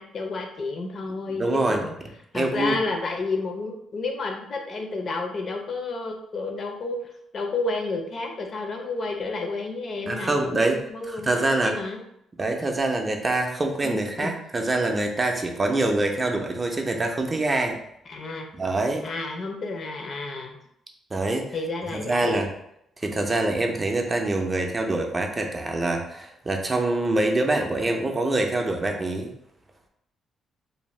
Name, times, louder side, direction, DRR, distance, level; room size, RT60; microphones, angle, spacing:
voice 1, 0.0-1.9 2.3-12.0 13.8-14.3 18.1-18.5 19.0-20.6 21.5-22.4, left 3 dB, 50° left, 3 dB, 0.5 m, -31 dB
voice 2, 1.3-1.8 2.3-2.8 10.1-11.7 12.4-17.8 18.5-19.1 21.1-21.5 21.9-22.5 23.0-29.3, right 2 dB, 25° right, 3 dB, 0.4 m, -25 dB
2.6 x 2.1 x 3.1 m, 0.75 s
cardioid pair, 90°, 0 cm